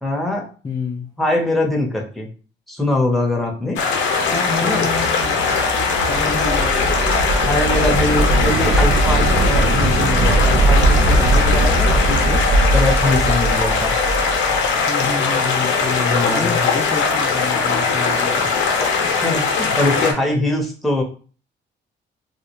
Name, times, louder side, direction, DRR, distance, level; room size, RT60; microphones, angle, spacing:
voice 1, 0.0-0.5 1.2-2.3 2.7-3.8 4.6-4.9 7.4-13.9 16.0-16.6 18.8-21.0, left 2 dB, ahead, 0 dB, 0.7 m, -22 dB
voice 2, 0.6-1.1 4.2-5.5 6.0-7.0 14.9-18.5, left 4 dB, 20° left, 2 dB, 0.3 m, -28 dB
sound 1, 3.8-20.1, left 5 dB, 80° left, 0.6 m, -20 dB
sound 2, 4.6-14.7, right 2 dB, 70° right, 0.4 m, -20 dB
2.3 x 2.1 x 2.9 m, 0.39 s
cardioid pair, 90°, 20 cm